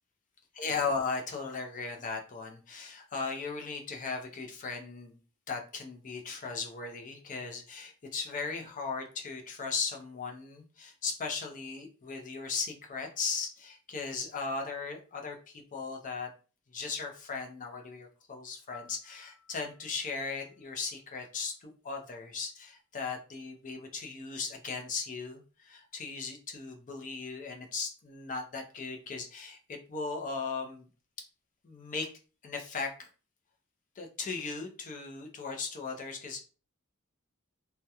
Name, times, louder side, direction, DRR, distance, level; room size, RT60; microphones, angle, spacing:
voice 1, 0.6-5.2 5.5-16.3 16.7-30.9 31.6-32.1 32.4-33.1 34.0-36.4, left 4 dB, 35° left, 3 dB, 0.5 m, -37 dB
Piano, 18.7-21.6 29.8-30.0, left 6 dB, 30° right, 0.7 m, -58 dB
2.3 x 2.1 x 2.8 m, 0.36 s
head